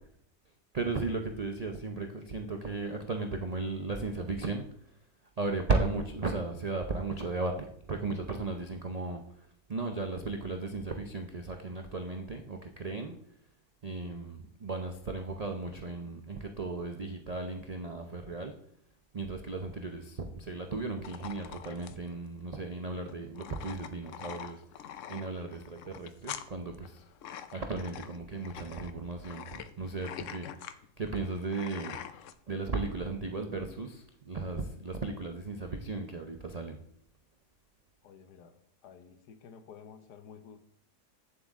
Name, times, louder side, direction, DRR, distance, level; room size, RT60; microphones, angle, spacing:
voice 1, 0.7-4.7 5.4-13.2 13.8-18.6 19.1-24.6 25.1-27.0 27.5-36.9, right 3 dB, 65° right, 4 dB, 0.3 m, -36 dB
sound 1, 21.0-32.3, left 9 dB, 65° left, 0.8 m, -45 dB
voice 2, 38.0-40.6, left 7 dB, 85° left, 9 dB, 1.4 m, -52 dB
8.6 x 7.6 x 3.6 m, 0.68 s
omnidirectional pair, 1.7 m